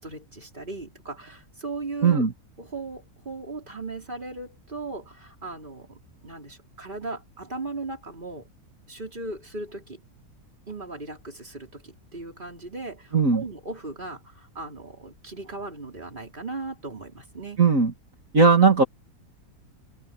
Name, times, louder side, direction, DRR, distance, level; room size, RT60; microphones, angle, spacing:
voice 1, 0.0-2.3 2.6-8.5 8.9-10.0 10.7-17.6, right 3 dB, 30° right, 4.4 m, -37 dB
voice 2, 17.6-17.9 18.3-18.8, right 4 dB, 55° right, 3.1 m, -17 dB
omnidirectional pair, 1.7 m